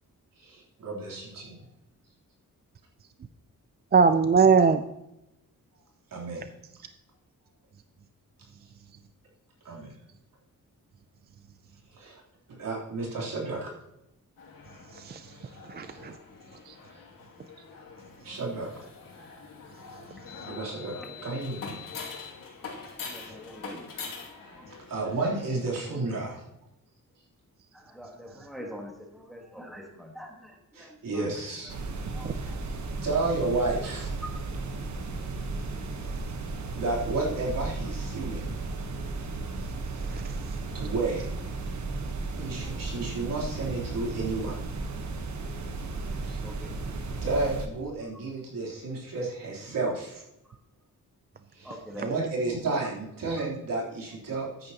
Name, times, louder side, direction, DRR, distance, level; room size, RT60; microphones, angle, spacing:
voice 1, 0.4-1.6 6.1-6.4 9.6-9.9 11.9-12.2 12.5-13.7 16.9-17.0 18.2-18.7 20.4-20.9 21.2-21.8 24.4-24.5 24.9-26.4 30.7-31.7 32.3-32.5 33.0-34.1 36.7-38.5 40.7-41.2 42.3-44.6 46.2-46.4 47.2-50.2 51.5-54.7, right 3 dB, 75° right, -3 dB, 3.4 m, -31 dB
voice 2, 3.9-4.8 14.9-15.3 15.7-16.1 16.7-16.8 32.2-32.3 40.0-40.6, right 5 dB, 30° right, 9 dB, 0.4 m, -22 dB
sound 1, 14.4-25.5, left 5 dB, 80° left, 2.5 m, -44 dB
voice 3, 20.9-21.3 22.6-23.9 24.6-24.7 27.7-31.3 32.1-32.6 34.2-34.4 40.1-40.2 42.6-42.7 46.4-46.7 51.6-52.2 53.4-53.5, equal, ahead, 1 dB, 1.4 m, -45 dB
sound 2, 31.7-47.7, right 3 dB, 55° right, 1.2 m, -35 dB
14.0 x 9.5 x 2.9 m, 0.87 s
wide cardioid pair, 170°, 33 cm